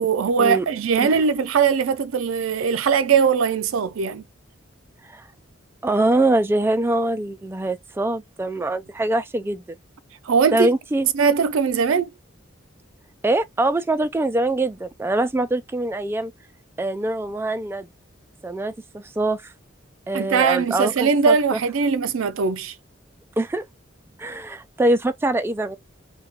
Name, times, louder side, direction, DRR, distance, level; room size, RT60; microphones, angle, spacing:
voice 1, 0.0-4.2 10.3-10.7 11.1-12.1 20.1-22.7, right 6 dB, 80° right, 0.4 m, -20 dB
voice 2, 5.8-9.6 10.5-11.1 13.2-16.3 16.8-17.9 18.4-19.5 20.1-21.6 23.4-23.6 24.2-25.8, right 2 dB, 10° right, 0.3 m, -23 dB
2.8 x 2.2 x 3.4 m
head